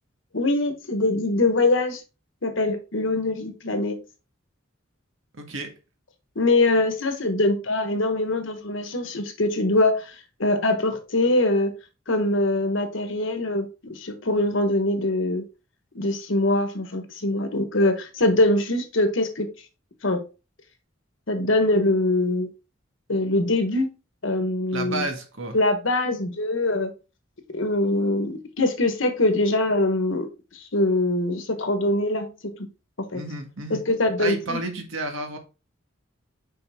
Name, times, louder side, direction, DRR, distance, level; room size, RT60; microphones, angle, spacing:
voice 1, 0.3-2.0 2.4-4.0 6.3-10.1 10.4-11.7 12.1-15.4 15.9-19.5 20.0-20.2 21.3-22.5 23.1-23.9 24.2-25.1 25.5-26.9 27.5-30.3 30.7-32.5 33.0-33.2 33.7-34.6, left 2 dB, 70° left, 1.3 m, -23 dB
voice 2, 5.4-5.7 24.7-25.6 33.1-33.8 34.2-35.4, right 2 dB, 75° right, 1.6 m, -31 dB
5.8 x 5.2 x 3.5 m
head